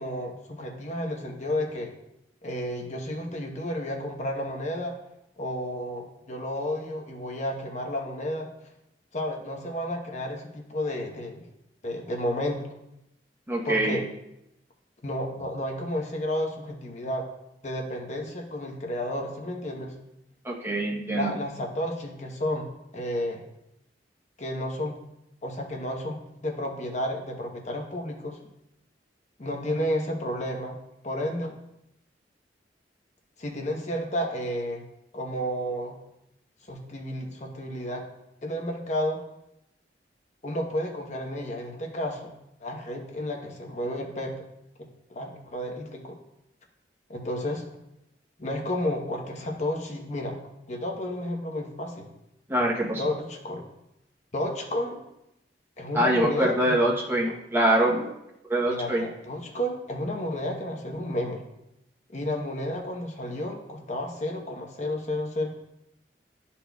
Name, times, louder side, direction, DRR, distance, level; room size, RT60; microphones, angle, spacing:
voice 1, 0.0-1.9 2.4-4.9 5.4-8.5 9.1-11.5 11.8-12.7 13.6-14.0 15.0-17.3 17.6-19.9 21.1-23.5 24.4-25.0 25.4-28.4 29.4-30.8 31.0-31.5 33.4-34.8 35.1-36.0 36.7-38.0 38.4-39.2 40.4-42.3 42.6-44.4 45.1-46.2 47.1-47.6 48.4-50.4 50.7-52.1 53.0-53.7 54.3-55.0 55.8-56.9 57.2-57.3 58.6-61.4 62.1-65.5, left 1 dB, 40° left, 2 dB, 0.9 m, -31 dB
voice 2, 13.5-14.0 20.4-21.3 52.5-53.0 55.9-58.0 58.5-59.0, right 1 dB, 15° right, -3 dB, 0.9 m, -24 dB
11.5 x 4.3 x 2.3 m, 0.87 s
head